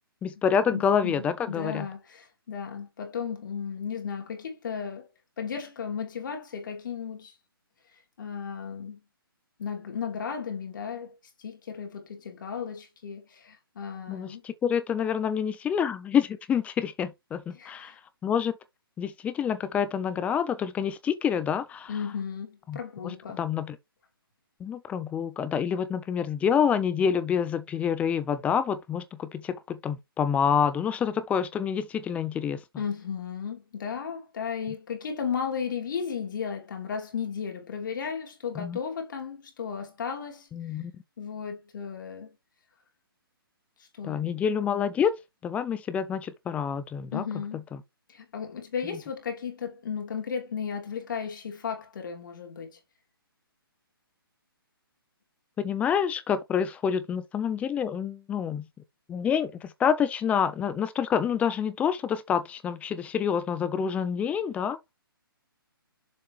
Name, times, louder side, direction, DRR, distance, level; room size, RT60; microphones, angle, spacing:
voice 1, 0.2-1.9 14.1-17.9 18.2-18.5 19.0-21.9 22.7-23.8 24.6-32.6 38.6-38.8 40.5-40.9 44.0-45.1 45.4-47.2 55.6-58.6 59.1-64.8, left 7 dB, 10° left, 0.5 m, -27 dB
voice 2, 0.7-5.1 5.4-7.3 8.2-9.0 9.6-14.4 17.5-18.0 21.9-23.4 32.8-40.5 41.2-42.3 43.8-44.3 47.1-47.6 48.1-52.8, left 6 dB, 55° left, 2.9 m, -35 dB
7.3 x 5.3 x 3.3 m
figure-of-eight pair, 140°, 12 cm